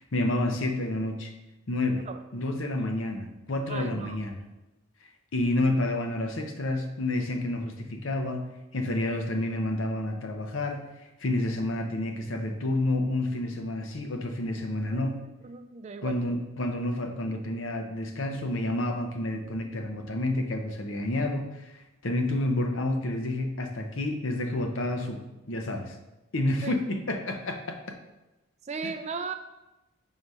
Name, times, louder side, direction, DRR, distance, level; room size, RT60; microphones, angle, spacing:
voice 1, 0.0-1.3 1.7-2.1 2.3-4.4 5.3-10.9 11.2-15.2 16.0-26.0 26.3-28.0 28.8-28.9, left 1 dB, 65° left, 4 dB, 0.7 m, -29 dB
voice 2, 3.7-4.2 14.9-16.2 26.6-26.8 28.6-29.3, right 4 dB, 30° right, 8 dB, 0.3 m, -37 dB
4.7 x 3.9 x 5.4 m, 1.0 s
head